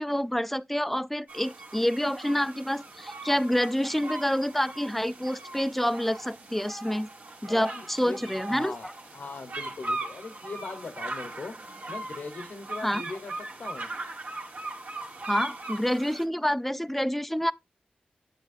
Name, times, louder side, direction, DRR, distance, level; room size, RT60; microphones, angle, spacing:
voice 1, 0.0-7.1 7.4-8.7 12.8-13.0 15.3-17.5, equal, 5° left, 0.4 m, -27 dB
sound 1, 1.3-16.2, right 2 dB, 65° right, 1.9 m, -39 dB
voice 2, 7.5-8.2 8.5-13.9, left 3 dB, 70° left, 0.9 m, -40 dB
8.0 x 7.4 x 2.5 m
cardioid pair, 55°, 3 cm